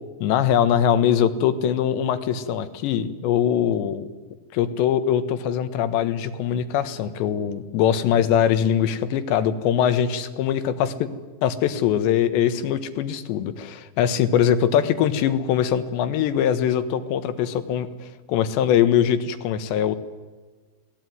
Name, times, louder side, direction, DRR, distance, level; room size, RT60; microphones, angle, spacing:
voice 1, 0.2-4.1 4.5-11.1 11.4-20.0, left 9 dB, 80° left, 12 dB, 3.6 m, -22 dB
27.5 x 19.5 x 9.5 m, 1.4 s
omnidirectional pair, 5.1 m